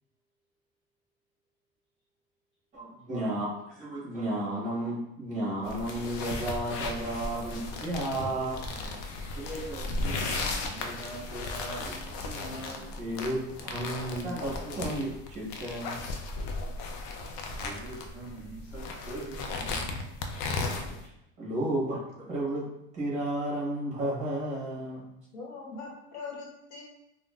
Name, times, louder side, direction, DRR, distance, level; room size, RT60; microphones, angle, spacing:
voice 1, 2.7-3.5 3.8-8.9 9.3-10.3 10.8-11.1 12.2-16.0 20.7-20.8 21.4-22.6 22.9-25.0, right 1 dB, 25° right, -6 dB, 1.3 m, -33 dB
sound 1, 5.6-21.1, left 3 dB, 65° left, 0.5 m, -36 dB
voice 2, 10.0-13.0 17.5-20.7, right 1 dB, 5° right, -8 dB, 0.3 m, -43 dB
voice 3, 25.3-26.8, left 4 dB, 80° left, -2 dB, 1.1 m, -41 dB
3.6 x 2.1 x 2.4 m, 0.85 s
cardioid pair, 170°, 30 cm